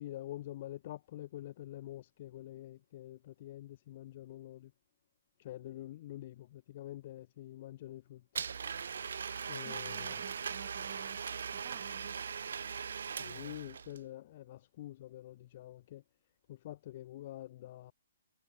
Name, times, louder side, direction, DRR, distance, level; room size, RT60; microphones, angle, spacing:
voice 1, 0.0-4.7 5.4-8.2 9.5-10.2 13.2-16.0 16.5-17.9, left 14 dB, 40° left, 1.2 m, -46 dB
Domestic sounds home sounds, 8.3-14.0, right 6 dB, 60° right, 1.3 m, -40 dB
voice 2, 9.6-12.2, right 34 dB, 30° right, 4.9 m, -54 dB
figure-of-eight pair, 130°, 0 cm